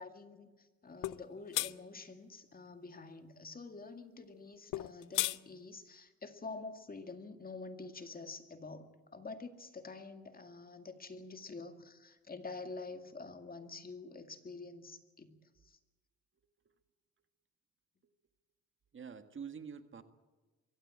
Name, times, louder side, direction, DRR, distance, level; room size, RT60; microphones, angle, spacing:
voice 1, 0.0-15.4 15.6-15.8, left 3 dB, 30° left, 7 dB, 2.2 m, -47 dB
sound 1, 1.0-1.2 1.5-1.7 4.7-5.4, left 17 dB, 85° left, 0.6 m, -33 dB
voice 2, 18.9-20.0, right 6 dB, 40° right, 9 dB, 1.8 m, -47 dB
23.0 x 16.5 x 8.7 m, 1.2 s
cardioid pair, 90°, 30 cm